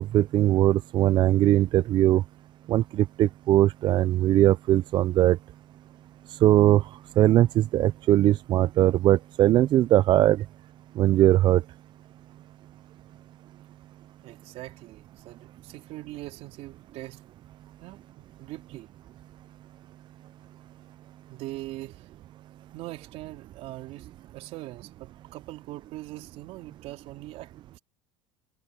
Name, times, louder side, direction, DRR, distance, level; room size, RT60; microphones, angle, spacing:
voice 1, 0.0-2.2 2.7-5.4 6.3-6.8 7.2-10.4 11.0-11.6, right 14 dB, 40° right, 0.4 m, -20 dB
voice 2, 14.2-17.2 17.8-18.9 21.3-22.1 22.7-27.8, right 17 dB, 60° right, 4.1 m, -42 dB
supercardioid pair, 125°, 12 cm